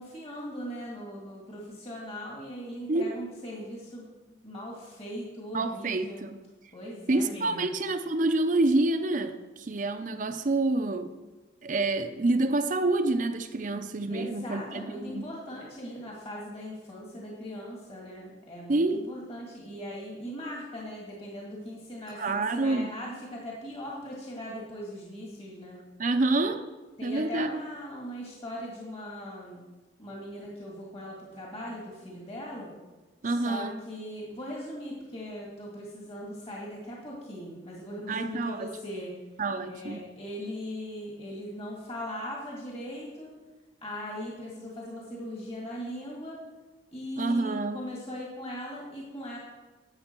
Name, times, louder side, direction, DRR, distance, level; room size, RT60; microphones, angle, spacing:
voice 1, 0.0-4.1 4.4-6.2 6.7-7.8 14.1-25.8 27.0-29.6 30.0-32.7 33.2-39.1 39.6-43.3 43.8-46.4 46.9-49.4, equal, 35° left, -3 dB, 2.1 m, -39 dB
voice 2, 5.5-6.4 7.1-11.1 11.6-15.3 18.7-19.1 22.2-22.9 26.0-26.6 27.0-27.6 33.2-33.7 38.1-38.7 39.4-40.0 47.2-47.8, right 2 dB, 45° right, 7 dB, 0.6 m, -27 dB
12.0 x 8.3 x 4.5 m, 1.2 s
head